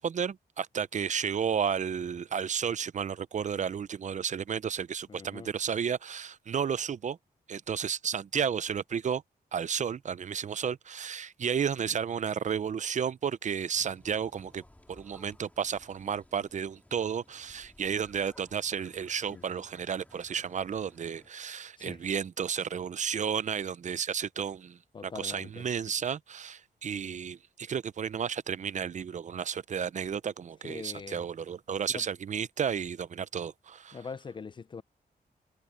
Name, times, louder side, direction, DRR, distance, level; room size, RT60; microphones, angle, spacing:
voice 1, 0.0-7.2 7.5-9.2 9.5-14.6 14.9-34.0, right 7 dB, 45° right, 0.5 m, -32 dB
voice 2, 5.1-5.5 19.3-19.4 21.8-22.0 24.9-25.7 30.6-31.2 31.9-32.1 33.9-34.8, left 5 dB, 30° left, 0.4 m, -42 dB
sound 1, 13.8-21.3, left 1 dB, 10° left, 2.5 m, -59 dB
wide cardioid pair, 160°, 17 cm